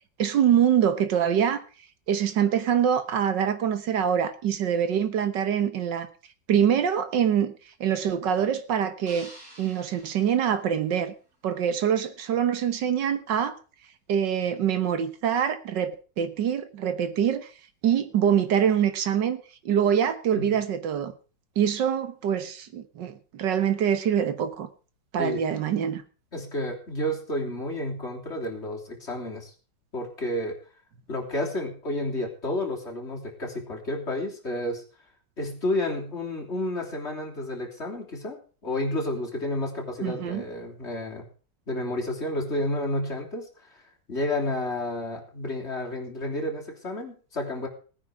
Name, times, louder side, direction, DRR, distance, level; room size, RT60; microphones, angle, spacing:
voice 1, 0.2-1.6 2.1-6.1 6.5-7.5 7.8-9.3 9.6-11.1 11.4-13.6 14.1-17.5 17.8-21.1 21.6-24.7 25.1-26.0 40.0-40.4, right 8 dB, 70° right, 11 dB, 1.8 m, -24 dB
sound 1, 9.1-11.3, right 1 dB, 40° right, 6.0 m, -49 dB
voice 2, 26.3-29.5 29.9-30.6 31.1-34.8 35.4-41.2 41.7-43.5 43.8-47.7, left 1 dB, 35° left, 0 dB, 3.5 m, -31 dB
17.5 x 9.8 x 4.7 m, 0.37 s
omnidirectional pair, 2.0 m